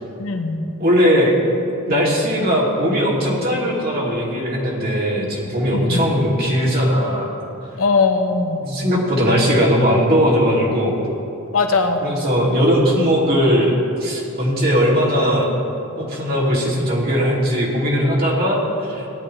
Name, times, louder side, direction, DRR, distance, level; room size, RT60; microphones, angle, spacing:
voice 1, 0.2-0.6 5.7-6.1 7.8-8.6 11.5-12.0, left 4 dB, 75° left, 5 dB, 1.1 m, -19 dB
voice 2, 0.8-1.4 1.8-7.3 8.6-10.9 12.0-15.6 15.9-19.1, equal, 45° right, -4 dB, 2.7 m, -18 dB
17.5 x 11.0 x 3.3 m, 2.9 s
head